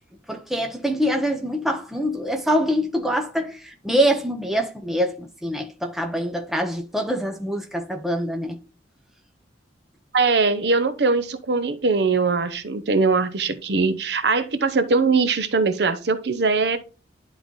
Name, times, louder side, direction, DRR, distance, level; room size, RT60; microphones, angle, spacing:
voice 1, 0.3-8.6, equal, ahead, 0.8 m, -24 dB
voice 2, 10.1-16.8, right 4 dB, 60° right, 0.7 m, -21 dB
11.0 x 3.9 x 3.1 m
head